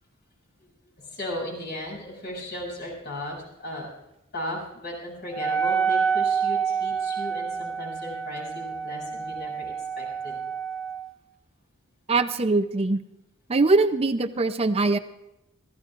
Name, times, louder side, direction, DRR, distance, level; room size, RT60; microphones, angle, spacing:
voice 1, 1.0-3.9 4.3-10.4, left 1 dB, 50° left, -2 dB, 7.5 m, -36 dB
Wind instrument woodwind instrument, 5.3-11.1, right 6 dB, 5° left, 0.9 m, -28 dB
voice 2, 12.1-13.0 13.5-15.0, right 3 dB, 30° right, 9 dB, 0.6 m, -22 dB
26.0 x 16.0 x 2.5 m, 0.88 s
head